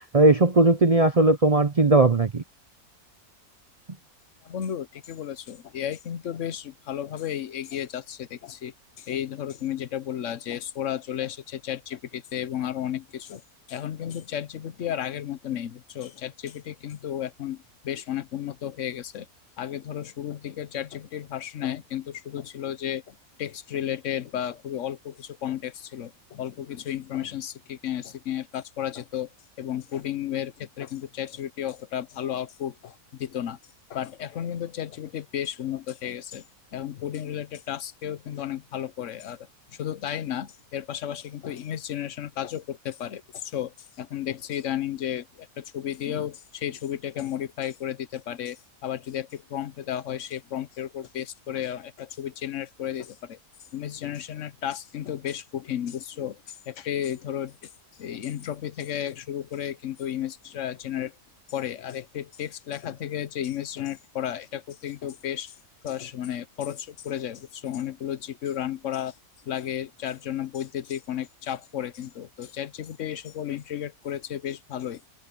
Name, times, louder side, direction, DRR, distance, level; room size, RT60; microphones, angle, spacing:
voice 1, 0.1-2.4, right 2 dB, 40° right, 0.5 m, -18 dB
voice 2, 4.4-13.4 13.7-19.3 19.6-29.3 29.6-33.6 33.9-36.4 36.7-53.4 53.7-57.7 58.0-61.1 61.5-65.5 65.8-69.1 69.4-75.0, left 10 dB, 60° left, 1.2 m, -33 dB
omnidirectional pair, 1.6 m